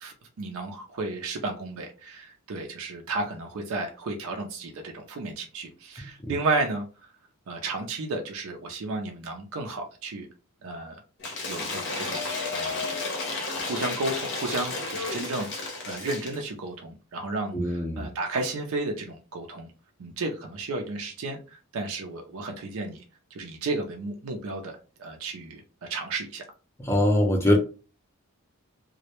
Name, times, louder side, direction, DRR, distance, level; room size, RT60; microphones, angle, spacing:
voice 1, 0.0-6.8 7.5-10.3 10.6-11.0 11.5-12.2 12.5-12.8 13.5-19.7 20.0-23.0 23.3-25.6 25.9-26.4, right 2 dB, 70° right, 0.4 m, -33 dB
voice 2, 6.0-6.4 17.5-18.1 26.8-27.6, left 1 dB, 10° left, 0.5 m, -23 dB
Cheering / Applause / Crowd, 11.2-16.4, left 3 dB, 55° left, 0.7 m, -32 dB
2.1 x 2.0 x 2.9 m
head